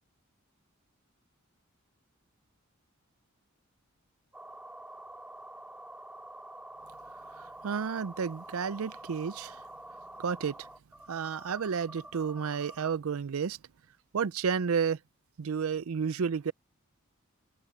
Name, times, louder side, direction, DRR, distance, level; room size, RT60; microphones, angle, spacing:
sound 1, 4.3-13.0, right 1 dB, 5° right, 2.1 m, -47 dB
voice 1, 7.0-10.7 11.1-13.6 13.9-15.0 15.4-16.5, right 6 dB, 80° right, 0.5 m, -32 dB
head